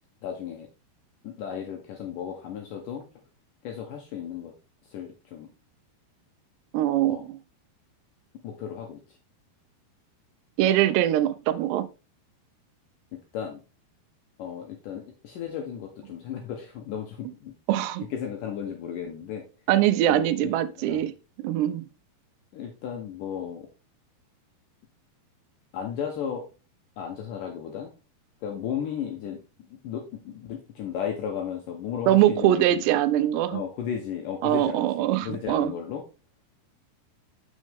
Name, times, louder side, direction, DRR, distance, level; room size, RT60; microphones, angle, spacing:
voice 1, 0.2-0.7 1.2-3.1 3.6-4.5 4.8-5.5 7.1-7.2 8.4-9.2 13.1-13.6 14.4-17.5 18.1-19.4 20.1-20.5 20.8-21.0 22.5-23.7 25.7-26.5 27.0-27.9 28.4-32.8 33.5-34.8 35.2-36.0, left 8 dB, 75° left, 2.0 m, -34 dB
voice 2, 6.7-7.4 10.6-11.9 17.7-18.0 19.7-21.1 21.4-21.8 32.1-33.6 34.4-35.7, right 13 dB, 85° right, 2.7 m, -22 dB
6.4 x 6.2 x 3.4 m
omnidirectional pair, 4.8 m